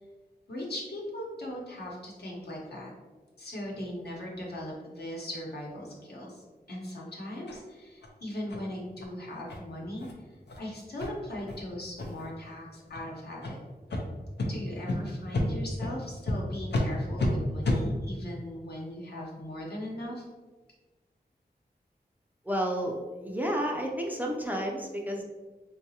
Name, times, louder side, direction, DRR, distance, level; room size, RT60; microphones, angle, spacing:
voice 1, 0.5-2.9 3.4-10.1 10.6-13.6 14.4-20.3, left 1 dB, 70° left, -3 dB, 0.9 m, -39 dB
sound 1, 7.5-7.6 8.0-8.1 8.5-8.6 9.0-9.1 9.5-9.6 10.0-10.1 10.5-10.6 11.0-11.1 11.5-11.6 12.0-12.3 12.9-13.0 13.4-13.5 13.9-14.0 14.4-14.5 14.9-15.0 15.3-15.5 15.8-15.9 16.3-16.4 16.7-16.9 17.2-17.3 17.6-17.8, left 2 dB, 85° left, 0.6 m, -30 dB
voice 2, 22.5-25.2, equal, 10° right, 0 dB, 0.4 m, -31 dB
3.8 x 2.3 x 2.8 m, 1.3 s
wide cardioid pair, 80°, 17 cm